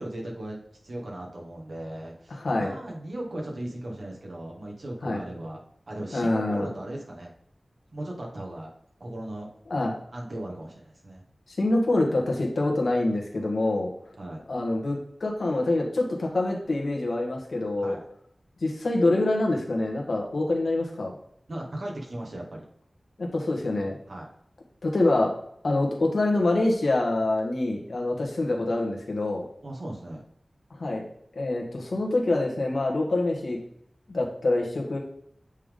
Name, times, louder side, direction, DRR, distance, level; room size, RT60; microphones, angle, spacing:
voice 1, 0.0-7.3 7.9-8.7 9.0-9.5 10.1-11.2 14.2-14.4 17.8-18.0 21.5-22.7 24.1-24.3 29.6-30.2, right 1 dB, 75° right, -1 dB, 1.5 m, -37 dB
voice 2, 2.3-2.7 5.0-5.2 6.1-6.7 9.7-9.9 11.5-13.9 14.5-18.0 18.6-21.1 23.2-24.0 24.8-25.3 25.6-29.4 30.8-31.0 31.3-33.6 34.1-35.0, left 2 dB, 90° left, -1 dB, 1.4 m, -25 dB
8.2 x 3.6 x 3.7 m, 0.70 s
wide cardioid pair, 75°, 0 cm